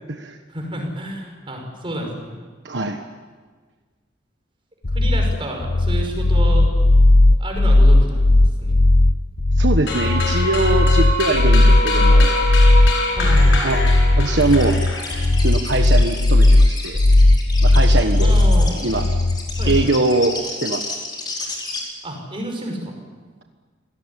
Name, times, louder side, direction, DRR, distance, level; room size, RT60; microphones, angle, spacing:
voice 1, 0.5-2.3 4.9-6.7 7.4-8.8 13.1-13.6 18.2-18.8 19.6-19.9 22.0-22.9, right 1 dB, 30° right, 2 dB, 5.8 m, -30 dB
voice 2, 2.6-3.0 9.6-12.3 13.6-13.8 14.2-14.8 15.4-17.0 17.6-18.3 18.8-19.0 19.7-20.8, right 2 dB, 65° right, 5 dB, 1.3 m, -22 dB
sound 1, 4.8-19.9, left 2 dB, 55° left, 1.0 m, -15 dB
sound 2, 9.9-15.4, left 2 dB, 90° left, 6.6 m, -25 dB
sound 3, 14.3-21.8, left 3 dB, 25° left, 4.9 m, -32 dB
25.5 x 17.5 x 9.9 m, 1.5 s
head